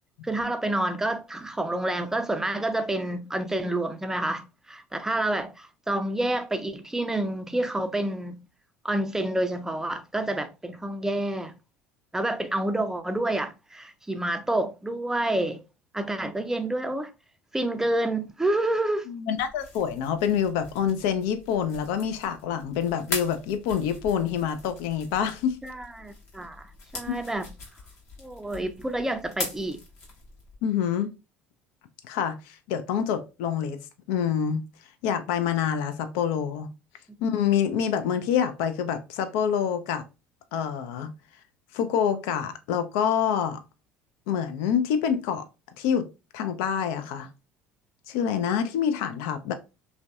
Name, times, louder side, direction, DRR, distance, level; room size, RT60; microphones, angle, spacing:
voice 1, 0.2-8.4 8.8-11.5 12.1-15.6 15.9-17.1 17.5-19.1 25.6-26.6 26.9-27.5 28.2-29.8, right 1 dB, 10° right, 0.4 m, -28 dB
voice 2, 19.1-25.6 30.6-31.1 32.1-33.8 34.1-34.6 35.0-36.7 37.2-40.0 40.5-41.1 41.7-43.6 44.3-45.5 45.8-46.0 46.3-47.3 48.1-49.5, left 8 dB, 75° left, 0.4 m, -26 dB
sound 1, 19.4-30.6, left 3 dB, 50° left, 1.1 m, -41 dB
2.6 x 2.1 x 2.3 m
hypercardioid pair, 75°, 6 cm